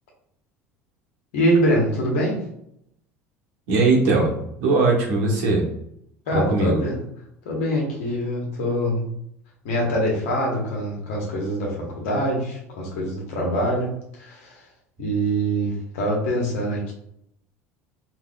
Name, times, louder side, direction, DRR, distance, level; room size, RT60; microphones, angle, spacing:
voice 1, 1.3-2.5 6.3-7.0 7.4-9.0 9.6-14.6 15.0-16.9, equal, 60° left, -1 dB, 1.2 m, -24 dB
voice 2, 3.7-5.7 6.3-6.8, right 3 dB, 60° right, -1 dB, 1.0 m, -20 dB
3.5 x 2.8 x 2.4 m, 0.73 s
figure-of-eight pair, 65°, 8 cm